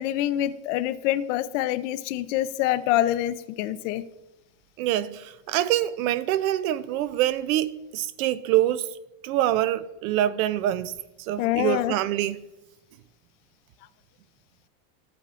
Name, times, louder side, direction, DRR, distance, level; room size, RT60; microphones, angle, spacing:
voice 1, 0.0-4.0 11.4-11.9, left 13 dB, 55° left, 0.5 m, -26 dB
voice 2, 4.8-8.9 9.2-12.4, right 13 dB, 65° right, 0.5 m, -25 dB
13.0 x 8.5 x 2.5 m
supercardioid pair, 160°, 46 cm